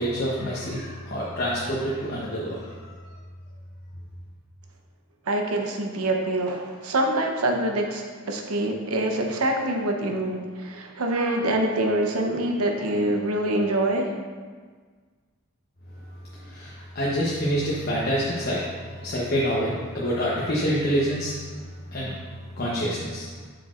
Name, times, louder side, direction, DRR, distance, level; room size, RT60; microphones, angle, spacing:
voice 1, 0.0-3.0 16.4-22.2 22.6-23.3, equal, 45° left, -6 dB, 0.9 m, -27 dB
voice 2, 5.3-14.1, right 1 dB, 90° right, 2 dB, 0.9 m, -25 dB
7.6 x 6.8 x 2.5 m, 1.5 s
head